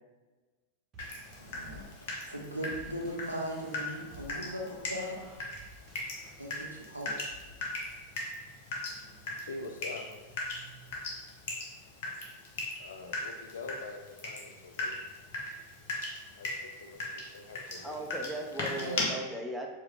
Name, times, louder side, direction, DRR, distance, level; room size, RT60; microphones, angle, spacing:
sound 1, 0.9-6.5, right 1 dB, 25° right, 0.9 m, -54 dB
Water tap faucet / Drip, 1.0-19.0, left 2 dB, 50° left, 0.9 m, -39 dB
voice 1, 1.4-5.2 6.4-7.3 18.7-19.0, equal, 85° right, -1 dB, 0.7 m, -39 dB
voice 2, 9.1-10.2 12.8-15.1 16.4-18.1, left 3 dB, 65° left, 5 dB, 0.4 m, -45 dB
voice 3, 17.8-19.7, right 1 dB, ahead, 0 dB, 0.5 m, -37 dB
4.6 x 2.2 x 3.3 m, 1.2 s
figure-of-eight pair, 90°, 0 cm